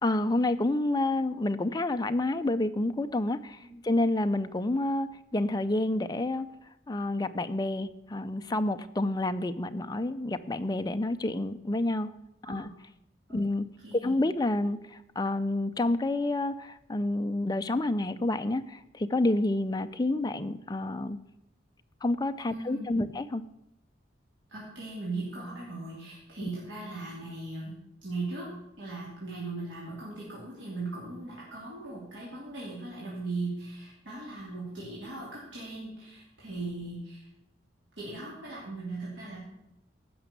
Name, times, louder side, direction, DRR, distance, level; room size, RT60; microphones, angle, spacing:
voice 1, 0.0-3.6 3.8-6.5 6.9-12.1 12.5-12.7 13.3-13.6 13.9-14.8 15.2-21.2 22.0-23.4, left 2 dB, 20° left, 9 dB, 0.5 m, -29 dB
voice 2, 13.8-14.2 22.5-22.9 24.5-27.7 28.0-28.5 28.8-37.3 38.0-39.4, right 3 dB, 75° right, -6 dB, 2.9 m, -38 dB
15.0 x 6.0 x 6.7 m, 0.87 s
head